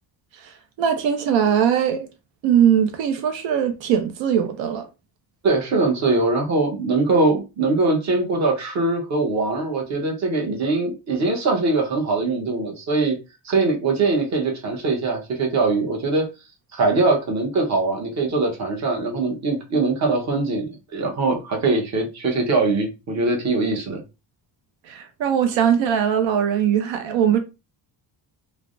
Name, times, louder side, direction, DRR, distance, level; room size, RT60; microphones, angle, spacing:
voice 1, 0.8-2.1 2.4-4.9 24.9-27.4, right 8 dB, 85° right, 0.6 m, -20 dB
voice 2, 5.4-13.2 13.4-16.3 16.7-24.0, right 3 dB, 40° right, 0.8 m, -22 dB
3.2 x 2.1 x 2.5 m
cardioid pair, 145°, 44 cm